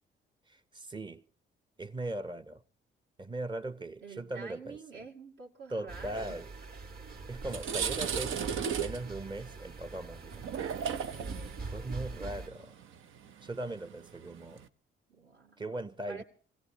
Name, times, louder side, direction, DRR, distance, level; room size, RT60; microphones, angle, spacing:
voice 1, 0.5-1.2 1.8-2.6 3.2-5.0 5.7-6.5 7.3-10.4 11.6-12.7 13.4-14.6 15.6-16.2, right 2 dB, 25° right, 0.7 m, -39 dB
voice 2, 4.0-6.4 7.6-8.6 12.1-12.7 15.1-16.2, right 5 dB, 70° right, 2.6 m, -49 dB
sound 1, 5.9-12.5, right 3 dB, 50° right, 1.7 m, -43 dB
sound 2, 6.9-7.0 7.4-14.7, right 7 dB, 85° right, 0.9 m, -37 dB
25.5 x 17.0 x 2.9 m
cardioid pair, 90°, 20 cm